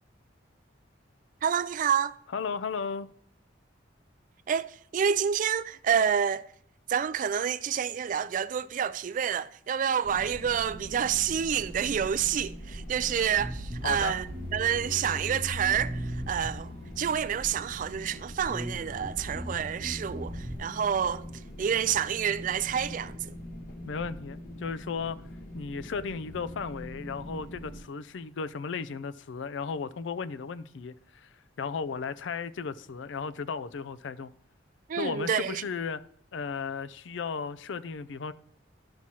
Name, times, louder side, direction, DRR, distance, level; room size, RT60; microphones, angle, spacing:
voice 1, 1.4-2.1 4.5-6.5 6.9-16.7 17.0-21.3 21.6-23.3 34.9-35.6, right 8 dB, 45° right, 0.3 m, -28 dB
voice 2, 2.3-3.1 13.8-14.1 23.9-25.2 25.5-31.3 31.6-34.3 35.0-36.0 36.3-38.3, left 5 dB, 75° left, 0.4 m, -35 dB
sound 1, 10.0-27.8, equal, 50° left, 1.1 m, -43 dB
Bass guitar, 13.4-16.9 17.6-18.1 18.4-20.6, equal, 85° right, 1.3 m, -38 dB
12.0 x 6.1 x 2.8 m
head